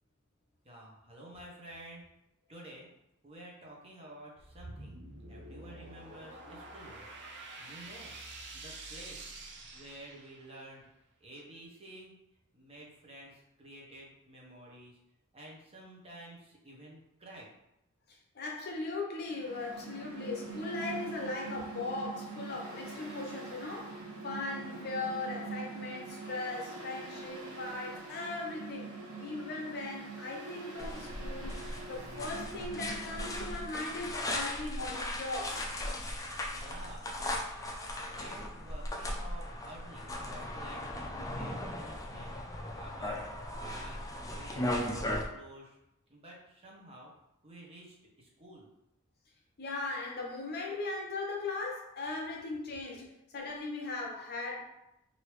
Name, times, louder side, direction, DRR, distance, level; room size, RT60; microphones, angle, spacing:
voice 1, 0.6-2.0 2.5-2.9 3.2-5.0 5.3-7.1 7.6-8.2 8.5-9.3 9.7-10.9 11.2-12.2 12.5-15.0 15.3-17.5 36.5-37.1 38.1-42.4 42.7-43.2 43.5-45.8 46.1-47.1 47.4-48.7, right 1 dB, 30° right, 0.8 m, -51 dB
sound 1, 4.4-10.7, right 2 dB, 55° right, 0.6 m, -47 dB
voice 2, 18.3-28.9 29.2-31.6 31.9-35.7 49.6-53.1 53.3-54.6, left 3 dB, 50° left, 0.7 m, -38 dB
Mechanical fan, 19.2-34.1, right 4 dB, 80° right, 0.9 m, -44 dB
sound 2, 30.8-45.2, left 1 dB, 15° left, 0.4 m, -37 dB
3.2 x 2.7 x 3.1 m
head